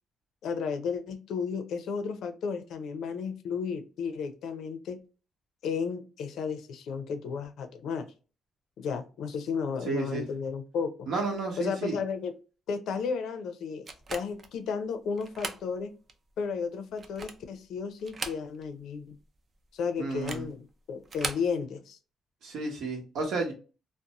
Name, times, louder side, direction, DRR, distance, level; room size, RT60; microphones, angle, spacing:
voice 1, 0.4-5.0 5.6-8.1 8.8-11.1 11.6-12.3 12.7-15.9 16.4-19.2 19.7-22.0, left 5 dB, 70° left, 7 dB, 0.5 m, -33 dB
voice 2, 9.8-10.2 11.1-12.0 20.0-20.5 22.4-23.5, right 3 dB, 75° right, 0 dB, 0.9 m, -32 dB
sound 1, 13.9-14.5 15.2-15.7 16.1-16.2 16.9-17.5 18.0-18.8 19.1-19.2 20.1-20.5 21.0-21.5, right 4 dB, 35° right, 0.4 m, -38 dB
2.5 x 2.0 x 2.8 m, 0.35 s
cardioid pair, 140°, 0 cm